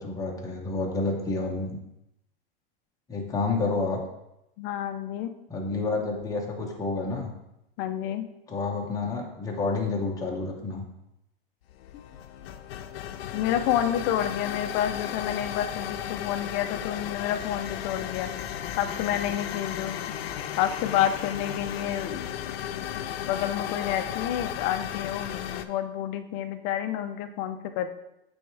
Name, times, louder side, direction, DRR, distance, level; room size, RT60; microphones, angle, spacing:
voice 1, 0.0-1.8 3.1-4.0 5.5-7.3 8.5-10.8, left 3 dB, 10° left, -1 dB, 0.9 m, -29 dB
voice 2, 4.6-5.3 7.8-8.3 13.3-18.3 18.8-20.0 20.2-20.3 20.6-22.3 23.3-27.9, left 10 dB, 35° left, 8 dB, 0.5 m, -29 dB
sound 1, 11.7-25.6, left 10 dB, 85° left, 0.6 m, -35 dB
9.0 x 3.5 x 3.3 m, 0.87 s
supercardioid pair, 150°, 29 cm